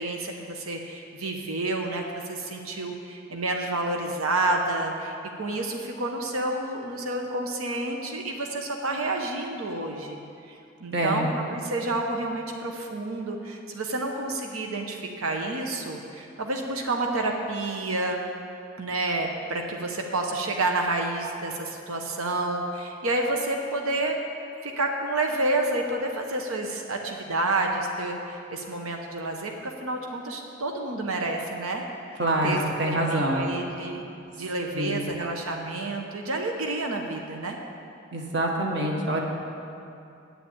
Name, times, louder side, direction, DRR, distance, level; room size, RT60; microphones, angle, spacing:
voice 1, 0.0-10.2 10.8-18.2 18.8-24.2 24.6-31.8 32.4-32.6 32.9-34.0 34.4-37.6, right 2 dB, 90° right, 3 dB, 0.9 m, -29 dB
voice 2, 10.9-11.3 32.2-33.5 34.7-35.0 38.1-39.2, right 1 dB, 55° right, 0 dB, 1.5 m, -25 dB
8.8 x 7.1 x 8.7 m, 2.6 s
head